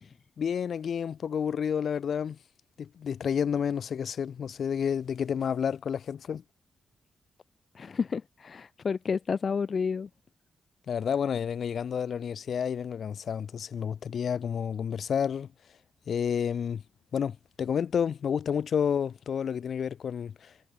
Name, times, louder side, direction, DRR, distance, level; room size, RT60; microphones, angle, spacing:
voice 1, 0.4-2.4 2.8-6.4 10.9-15.5 16.1-16.8 17.1-20.5, left 7 dB, 60° left, 1.3 m, -30 dB
voice 2, 7.7-10.1, left 5 dB, 45° left, 2.7 m, -30 dB
cardioid pair, 120°, 0 cm